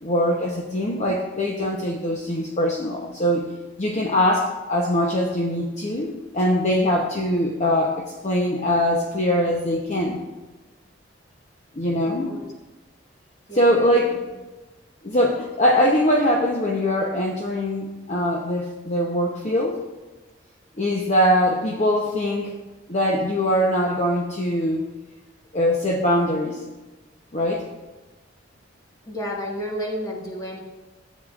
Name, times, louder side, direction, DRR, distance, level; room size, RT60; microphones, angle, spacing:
voice 1, 0.0-3.5 3.8-10.2 11.8-12.3 13.5-14.2 15.0-19.8 20.8-22.5 22.9-24.9 25.5-26.6 27.3-27.7, equal, 35° left, -1 dB, 0.8 m, -22 dB
voice 2, 12.0-12.5 13.5-14.4 29.0-30.6, equal, 20° left, -2 dB, 1.6 m, -32 dB
13.0 x 8.4 x 2.4 m, 1.2 s
head